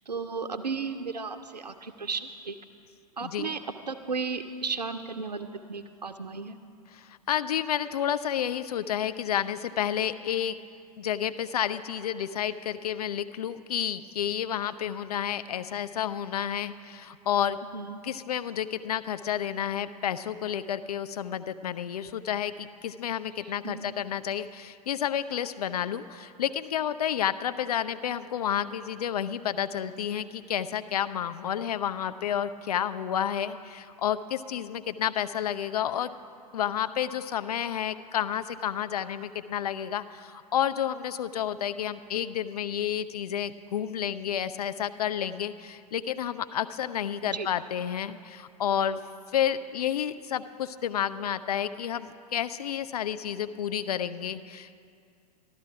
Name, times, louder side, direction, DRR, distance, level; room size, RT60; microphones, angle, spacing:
voice 1, 0.1-2.6 3.2-3.6 3.9-6.6 17.7-18.0 23.4-23.9 47.2-47.5, right 4 dB, 85° right, 8 dB, 0.5 m, -34 dB
voice 2, 6.9-10.6 11.0-17.6 18.0-36.1 36.5-49.0 49.3-54.9, left 9 dB, 70° left, 12 dB, 0.5 m, -30 dB
14.0 x 12.0 x 4.9 m, 2.4 s
figure-of-eight pair, 100°, 20 cm